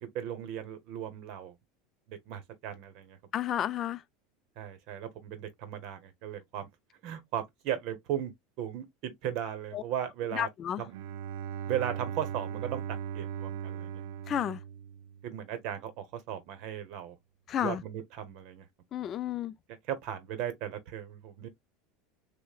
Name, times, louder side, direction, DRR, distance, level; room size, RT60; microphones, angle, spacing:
voice 1, 0.0-1.5 2.1-3.2 4.6-6.7 7.0-8.3 8.6-10.5 10.8-10.9 11.7-12.8 13.1-14.0 15.2-17.2 17.6-18.6 19.7-21.5, right 10 dB, 55° right, 0.9 m, -37 dB
voice 2, 3.3-4.0 9.7-9.8 10.3-10.8 14.3-14.6 17.5-17.8 18.9-19.5, left 10 dB, 35° left, 0.3 m, -31 dB
Bowed string instrument, 10.9-15.6, right 8 dB, 85° right, 0.4 m, -38 dB
6.2 x 2.1 x 2.3 m
supercardioid pair, 135°, 0 cm